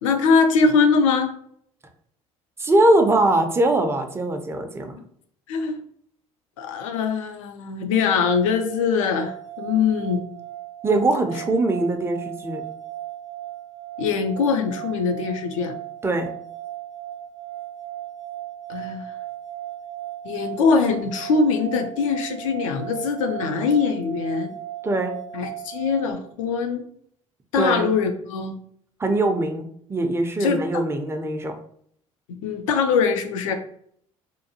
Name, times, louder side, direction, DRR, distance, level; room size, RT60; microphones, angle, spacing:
voice 1, 0.0-1.4 5.5-5.8 6.6-10.3 14.0-15.8 18.7-19.1 20.2-24.5 25.3-26.8 27.5-28.6 30.4-30.8 32.3-33.5, left 5 dB, 75° left, 7 dB, 0.4 m, -22 dB
voice 2, 2.6-5.0 10.8-12.6 16.0-16.3 24.8-25.2 27.6-27.9 29.0-31.5, right 2 dB, 15° right, 5 dB, 0.5 m, -21 dB
sound 1, 8.3-26.1, right 13 dB, 55° right, 0.6 m, -37 dB
2.6 x 2.2 x 2.7 m, 0.65 s
figure-of-eight pair, 55°, 17 cm